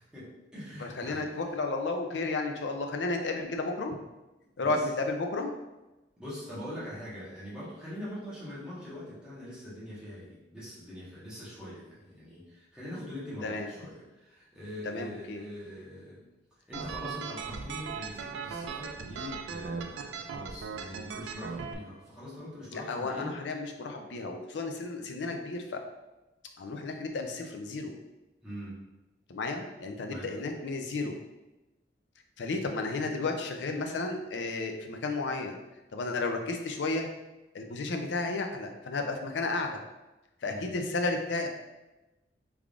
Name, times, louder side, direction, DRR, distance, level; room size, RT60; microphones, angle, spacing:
voice 1, 0.0-1.3 4.6-4.9 6.2-16.2 16.7-23.4 28.4-28.8 30.1-30.3 40.4-40.7, left 1 dB, 5° right, -10 dB, 1.2 m, -43 dB
voice 2, 0.8-3.9 4.6-4.9 5.2-5.6 13.4-13.7 14.8-15.4 22.7-25.8 26.6-27.9 29.3-31.2 32.4-35.6 35.9-37.1 37.5-39.8 40.4-41.5, left 3 dB, 75° left, 4 dB, 0.5 m, -33 dB
sound 1, 16.7-21.7, right 5 dB, 80° right, 0.3 m, -38 dB
3.5 x 3.4 x 2.4 m, 1.0 s
head